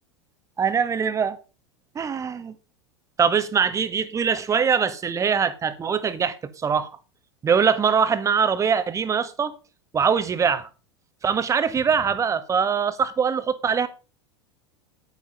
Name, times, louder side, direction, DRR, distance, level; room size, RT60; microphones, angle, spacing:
voice 1, 0.6-1.4 1.9-2.5 3.2-6.9 7.4-9.5 9.9-10.7 11.2-13.9, right 6 dB, 20° right, 1.5 m, -22 dB
10.5 x 9.8 x 5.2 m
figure-of-eight pair, 85°, 15 cm